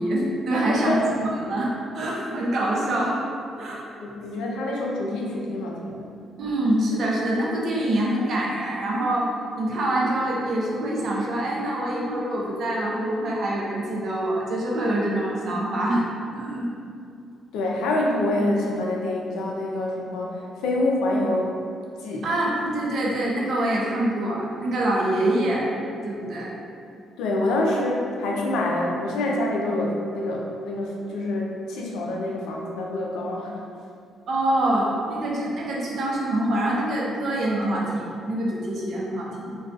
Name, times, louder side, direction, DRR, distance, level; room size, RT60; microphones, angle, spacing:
voice 1, 0.0-3.2 3.6-3.8 6.4-9.3 9.6-16.0 16.3-16.7 22.2-25.7 26.0-26.5 34.3-39.6, right 1 dB, 60° right, -4 dB, 0.5 m, -25 dB
voice 2, 0.5-1.0 4.0-6.1 17.5-21.5 22.0-22.2 27.2-33.6, left 1 dB, 90° left, -2 dB, 0.4 m, -26 dB
2.3 x 2.2 x 2.4 m, 2.5 s
cardioid pair, 90°, 0 cm